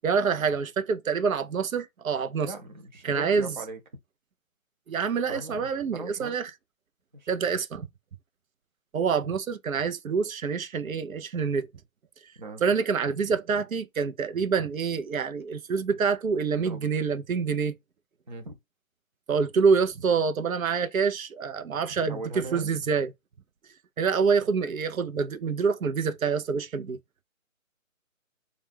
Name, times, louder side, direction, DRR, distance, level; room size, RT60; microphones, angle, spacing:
voice 1, 0.0-2.5 3.0-3.6 4.9-6.5 7.3-7.9 8.9-11.7 12.6-17.7 19.3-23.1 24.0-27.0, right 5 dB, 85° right, 0.7 m, -26 dB
voice 2, 2.4-3.8 5.3-6.3 7.1-7.3 12.4-12.6 16.6-16.9 18.3-18.6 22.1-22.7, right 2 dB, 35° right, 0.6 m, -39 dB
2.4 x 2.2 x 3.3 m
figure-of-eight pair, 160°, 40 cm